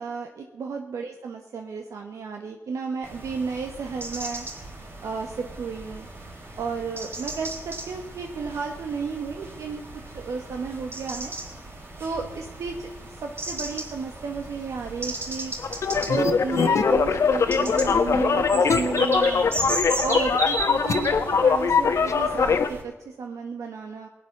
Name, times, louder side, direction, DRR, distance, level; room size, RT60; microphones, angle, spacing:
voice 1, 0.0-4.4 5.0-6.1 6.6-9.8 10.1-11.3 12.0-15.5 16.0-19.4 20.0-24.1, right 5 dB, 75° right, 3 dB, 1.3 m, -32 dB
sound 1, 3.0-22.8, right 2 dB, 45° right, 3.6 m, -36 dB
sound 2, 15.6-22.7, left 5 dB, 65° left, 1.3 m, -22 dB
18.0 x 9.0 x 6.6 m, 1.1 s
supercardioid pair, 50°, 5 cm